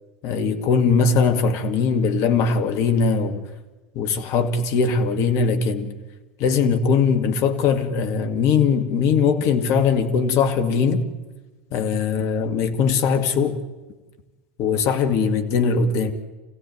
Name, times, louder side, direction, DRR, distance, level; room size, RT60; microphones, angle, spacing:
voice 1, 0.2-3.5 4.0-6.0 6.4-11.0 11.7-13.6 14.6-16.1, left 5 dB, 55° left, 2.3 m, -20 dB
27.0 x 16.0 x 9.4 m
hypercardioid pair, 85°, 6 cm